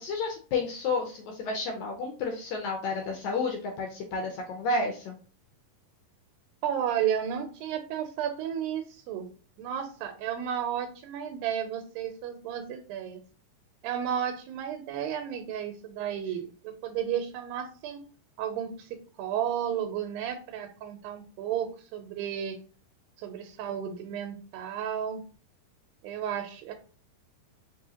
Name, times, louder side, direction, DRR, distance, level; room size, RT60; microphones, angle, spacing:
voice 1, 0.0-5.2, left 3 dB, 80° left, 2 dB, 1.7 m, -31 dB
voice 2, 6.6-9.3 9.6-13.2 13.8-18.0 18.4-22.6 23.2-25.2 26.0-26.7, right 9 dB, 90° right, 6 dB, 2.3 m, -33 dB
5.1 x 3.0 x 2.7 m, 0.40 s
omnidirectional pair, 4.0 m